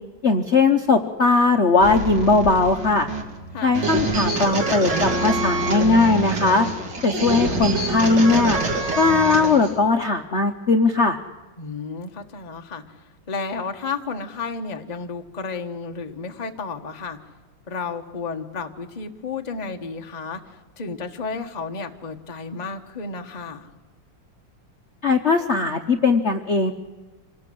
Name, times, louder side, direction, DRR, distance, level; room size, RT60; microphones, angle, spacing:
voice 1, 0.2-3.1 3.6-6.7 7.0-8.6 9.0-11.2 25.0-26.7, left 3 dB, 45° left, 6 dB, 1.0 m, -19 dB
sound 1, 1.8-9.8, right 2 dB, 60° right, 3.3 m, -26 dB
voice 2, 3.5-3.9 11.6-12.8 13.3-17.2 17.7-20.4 20.8-23.7, left 4 dB, 25° left, 5 dB, 1.3 m, -32 dB
26.5 x 18.5 x 7.7 m, 1.3 s
omnidirectional pair, 2.2 m